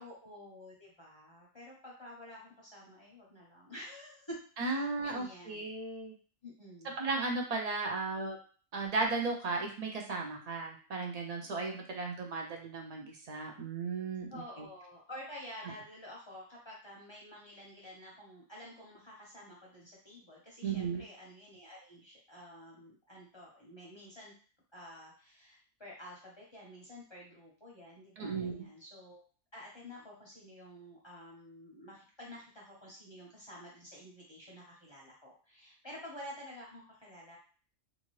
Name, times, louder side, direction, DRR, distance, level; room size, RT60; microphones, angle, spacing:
voice 1, 0.0-5.7 6.4-7.0 14.3-24.3 24.7-29.2 29.5-37.4, left 1 dB, 30° left, -4 dB, 0.6 m, -50 dB
voice 2, 4.6-6.1 7.0-8.4 8.7-14.7 20.6-21.0 28.2-28.7, right 3 dB, 55° right, 1 dB, 0.4 m, -35 dB
2.6 x 2.4 x 3.0 m, 0.40 s
omnidirectional pair, 1.3 m